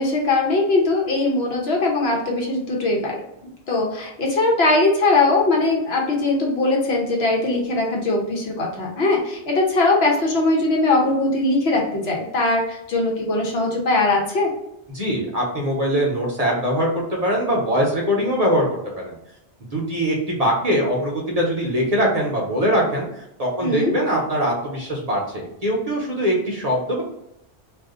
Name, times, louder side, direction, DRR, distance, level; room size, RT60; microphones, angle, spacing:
voice 1, 0.0-3.2 3.7-14.5 23.6-23.9, left 2 dB, 65° left, -1 dB, 1.0 m, -20 dB
voice 2, 14.9-18.7 19.0-19.1 19.7-23.1 23.4-27.0, equal, 40° right, -3 dB, 0.7 m, -22 dB
2.6 x 2.4 x 3.5 m, 0.81 s
omnidirectional pair, 1.1 m